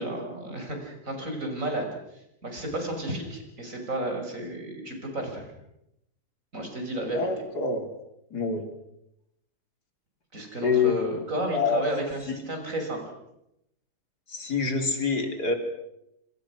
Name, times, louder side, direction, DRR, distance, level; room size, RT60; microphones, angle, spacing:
voice 1, 0.0-1.9 2.4-5.4 6.5-7.3 10.3-13.0, right 1 dB, 55° right, 3 dB, 6.8 m, -32 dB
voice 2, 7.1-7.9 8.3-8.7 10.6-11.1 11.5-11.8 12.3-12.4 14.3-15.5, left 5 dB, 80° left, 5 dB, 4.0 m, -26 dB
27.0 x 26.0 x 6.3 m, 0.83 s
omnidirectional pair, 1.7 m